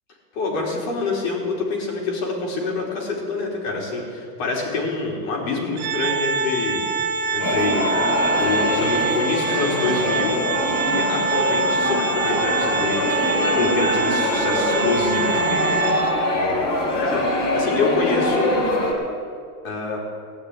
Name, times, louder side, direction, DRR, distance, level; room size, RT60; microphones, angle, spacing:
voice 1, 0.3-6.9 7.3-7.9 8.4-13.3 13.6-15.5 16.3-18.6 19.6-20.0, left 3 dB, 55° left, -2 dB, 4.7 m, -26 dB
Organ, 5.8-16.5, right 3 dB, 35° right, 2.6 m, -24 dB
sound 1, 7.4-18.9, left 1 dB, 40° left, 4.4 m, -24 dB
17.5 x 6.6 x 9.8 m, 2.1 s
supercardioid pair, 140°, 47 cm